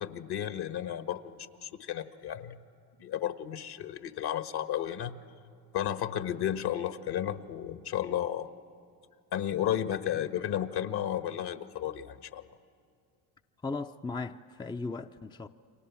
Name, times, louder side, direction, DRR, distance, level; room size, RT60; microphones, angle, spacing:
voice 1, 0.0-2.6 3.0-5.2 5.7-8.5 9.3-12.4, left 10 dB, 50° left, 1.4 m, -33 dB
voice 2, 13.6-15.5, left 3 dB, 10° left, 0.6 m, -37 dB
29.5 x 24.5 x 7.2 m
hypercardioid pair, 70°, 48 cm